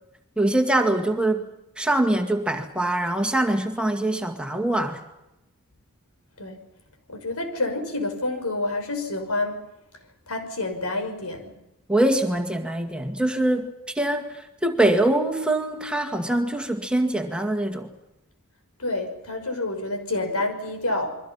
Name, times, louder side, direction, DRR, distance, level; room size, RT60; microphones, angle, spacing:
voice 1, 0.4-1.5 1.8-5.0 11.9-17.9, right 1 dB, 5° right, 4 dB, 2.0 m, -23 dB
voice 2, 7.1-9.6 10.3-11.6 18.8-21.2, left 2 dB, 90° left, 6 dB, 6.0 m, -28 dB
29.0 x 23.5 x 5.8 m, 0.91 s
head